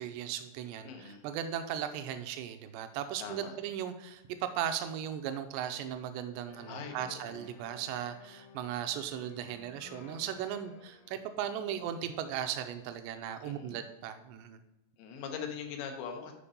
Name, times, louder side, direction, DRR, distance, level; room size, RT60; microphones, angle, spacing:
voice 1, 0.0-14.6, right 9 dB, 80° right, 8 dB, 2.8 m, -37 dB
voice 2, 0.8-1.2 3.2-3.6 6.7-7.5 13.4-13.8 15.0-16.3, left 6 dB, 90° left, 3 dB, 3.3 m, -42 dB
sound 1, 6.5-12.4, left 5 dB, 70° left, 2.5 m, -56 dB
8.5 x 5.1 x 5.2 m, 0.92 s
omnidirectional pair, 5.0 m